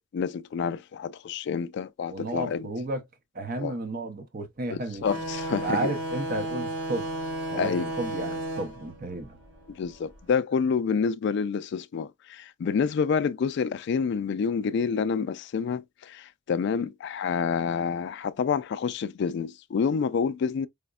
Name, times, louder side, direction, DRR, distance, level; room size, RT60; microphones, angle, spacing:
voice 1, 0.1-2.7 3.6-3.7 4.7-5.9 7.6-7.9 9.7-20.7, left 6 dB, 55° left, 0.3 m, -28 dB
voice 2, 2.1-3.0 3.3-5.0 5.5-7.1 7.5-9.4, right 2 dB, 45° right, 0.7 m, -32 dB
sound 1, 5.0-10.2, right 1 dB, 60° right, 1.5 m, -34 dB
4.9 x 2.1 x 2.3 m
head